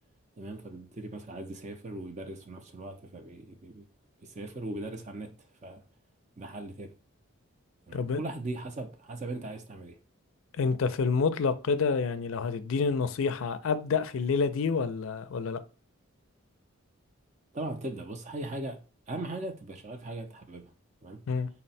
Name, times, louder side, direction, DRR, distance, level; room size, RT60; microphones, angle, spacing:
voice 1, 0.4-3.8 4.2-5.3 5.6-5.8 6.4-6.9 7.9-10.0 17.5-20.7 21.0-21.2, right 2 dB, 35° right, 0.4 m, -39 dB
voice 2, 10.6-15.6 21.3-21.5, left 5 dB, 65° left, 0.4 m, -28 dB
4.0 x 2.1 x 4.0 m
head